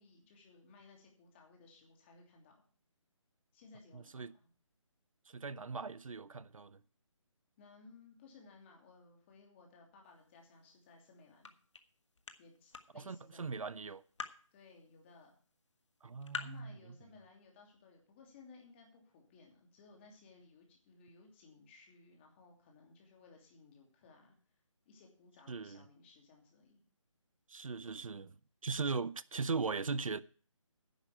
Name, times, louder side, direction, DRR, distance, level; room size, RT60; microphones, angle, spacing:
voice 1, 0.0-2.5 3.5-4.5 7.6-11.5 12.4-13.6 14.5-15.3 16.3-24.3 24.8-26.8, left 4 dB, 20° left, 2.8 m, -60 dB
voice 2, 3.9-4.3 5.3-6.8 12.9-14.0 16.0-16.8 25.5-25.8 27.5-28.3 28.6-30.2, right 4 dB, 85° right, 0.6 m, -39 dB
sound 1, 10.0-16.6, left 5 dB, 60° left, 1.4 m, -50 dB
10.5 x 6.2 x 8.6 m
figure-of-eight pair, 160°, 17 cm